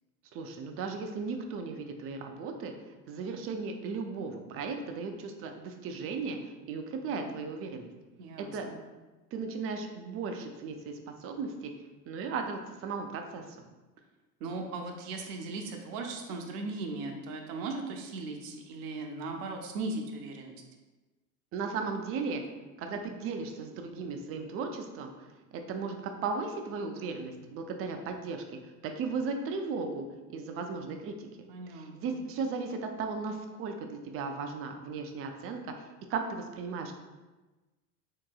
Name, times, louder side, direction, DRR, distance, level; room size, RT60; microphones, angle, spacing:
voice 1, 0.3-2.7 3.1-7.9 8.4-8.7 9.3-11.7 12.1-13.4 21.5-22.4 22.8-25.1 25.5-28.4 28.8-31.3 31.7-35.6 36.1-36.9, right 4 dB, 30° right, 4 dB, 0.4 m, -36 dB
voice 2, 8.2-8.8 14.4-20.6 31.5-32.2, right 3 dB, 75° right, 3 dB, 0.7 m, -38 dB
3.7 x 2.8 x 2.3 m, 1.2 s
hypercardioid pair, 85°, 47 cm